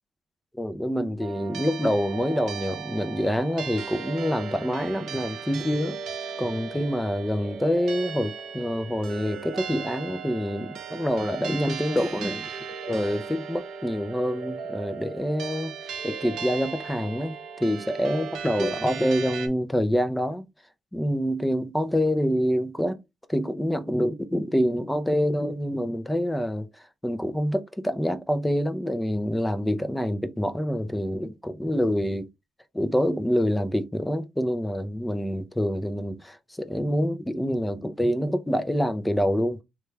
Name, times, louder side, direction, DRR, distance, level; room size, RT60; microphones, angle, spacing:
voice 1, 0.5-6.0 6.4-12.5 12.9-15.7 16.0-20.4 20.9-23.0 23.3-26.7 27.0-32.3 32.7-39.6, equal, 10° left, 0.5 m, -26 dB
sound 1, 1.2-19.5, right 6 dB, 75° right, 0.6 m, -37 dB
3.2 x 2.3 x 3.2 m
cardioid pair, 90°, 0 cm